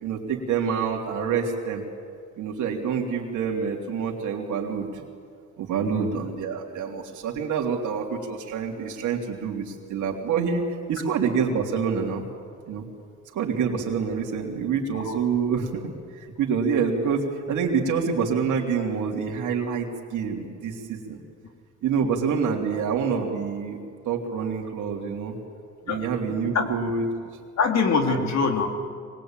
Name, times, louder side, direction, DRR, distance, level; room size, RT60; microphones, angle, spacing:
voice 1, 0.0-1.8 2.4-5.0 5.6-10.6 10.9-12.2 12.7-12.8 13.3-21.2 21.8-23.8 24.0-25.4 25.9-27.0 28.1-28.3, right 6 dB, 80° right, 0 dB, 3.3 m, -27 dB
voice 2, 27.6-28.8, left 5 dB, 65° left, 4 dB, 3.2 m, -24 dB
23.5 x 21.0 x 9.0 m, 2.1 s
cardioid pair, 90°, 30 cm